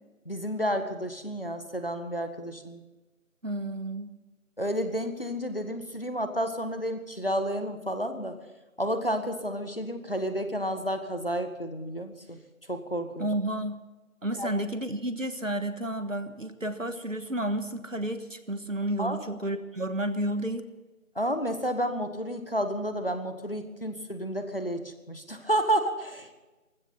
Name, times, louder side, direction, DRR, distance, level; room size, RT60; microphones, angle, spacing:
voice 1, 0.2-2.8 4.6-8.3 8.8-12.4 12.7-13.2 14.4-14.5 19.0-19.2 21.1-26.4, equal, 40° left, 7 dB, 1.6 m, -31 dB
voice 2, 3.4-4.1 13.2-13.8 14.2-20.7, right 1 dB, 65° right, 10 dB, 1.6 m, -31 dB
19.5 x 15.5 x 4.3 m, 1.1 s
figure-of-eight pair, 175°, 42 cm